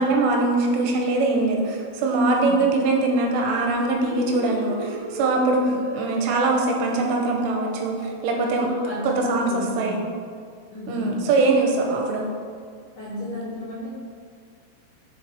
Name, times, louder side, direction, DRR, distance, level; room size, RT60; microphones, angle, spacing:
voice 1, 0.0-5.6 5.9-8.0 8.2-8.7 9.0-10.1 10.9-12.2, right 3 dB, 85° right, 1 dB, 3.2 m, -22 dB
sound 1, 3.6-8.4, right 2 dB, 55° right, 1.4 m, -37 dB
voice 2, 8.3-10.1 10.7-11.3 13.0-13.9, left 1 dB, 60° left, -10 dB, 2.3 m, -33 dB
6.9 x 4.8 x 4.4 m, 2.1 s
omnidirectional pair, 5.6 m